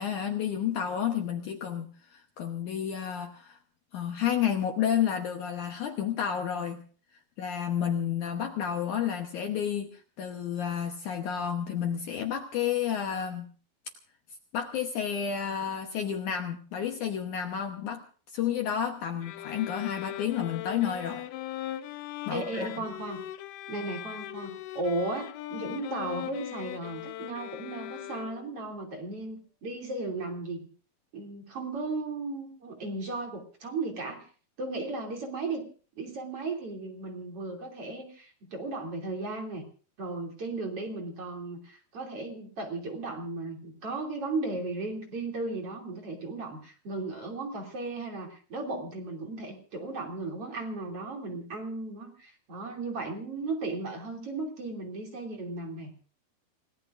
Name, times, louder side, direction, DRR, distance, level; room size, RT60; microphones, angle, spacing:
voice 1, 0.0-3.6 3.9-6.8 7.4-13.5 14.5-18.0 18.3-21.2 22.3-22.7, left 8 dB, 65° left, 3 dB, 2.2 m, -31 dB
sound 1, 19.2-28.7, left 13 dB, 80° left, 2.8 m, -40 dB
voice 2, 22.3-23.2 23.7-30.7 31.1-34.3 34.6-35.7 36.0-39.6 40.0-55.9, right 2 dB, 40° right, 1 dB, 3.5 m, -35 dB
29.5 x 17.5 x 2.6 m, 0.41 s
omnidirectional pair, 4.5 m